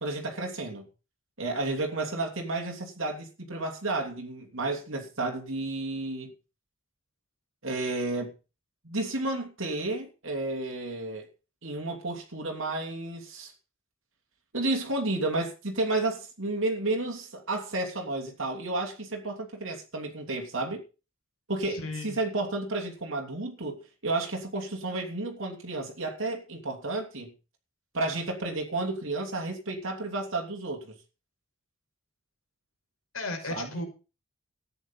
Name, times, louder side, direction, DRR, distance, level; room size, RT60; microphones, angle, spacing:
voice 1, 0.0-0.9 1.4-6.3 7.6-8.3 8.8-11.3 11.6-13.5 14.5-20.8 21.5-27.3 27.9-30.9 33.5-33.8, right 2 dB, 70° right, 3.1 m, -32 dB
voice 2, 21.7-22.2 33.1-33.8, left 2 dB, 80° left, 5.6 m, -35 dB
14.0 x 9.6 x 5.5 m
head